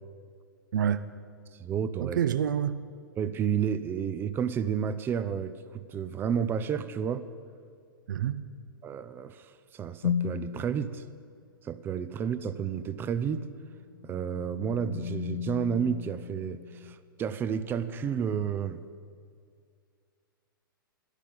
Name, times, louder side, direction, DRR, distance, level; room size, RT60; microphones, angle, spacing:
voice 1, 0.7-1.0 2.0-2.8 8.1-8.4, right 9 dB, 60° right, 13 dB, 0.6 m, -27 dB
voice 2, 1.6-2.2 3.2-7.2 8.8-11.0 11.6-13.5 14.0-18.8, right 7 dB, 20° right, 13 dB, 0.5 m, -31 dB
sound 1, 10.0-10.6 13.5-17.0, left 8 dB, 60° left, 0.8 m, -35 dB
11.5 x 8.2 x 8.6 m, 2.2 s
figure-of-eight pair, 110°, 12 cm